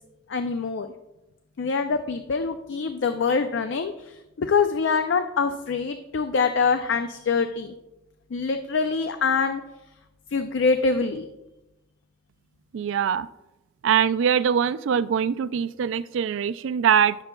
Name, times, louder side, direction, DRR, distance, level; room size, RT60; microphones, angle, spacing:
voice 1, 0.3-0.9 1.6-7.7 8.3-9.6 10.3-11.3, left 5 dB, 65° left, 8 dB, 0.4 m, -24 dB
voice 2, 12.7-13.3 13.8-17.2, right 8 dB, 75° right, 16 dB, 0.3 m, -22 dB
17.0 x 6.8 x 2.3 m, 0.99 s
head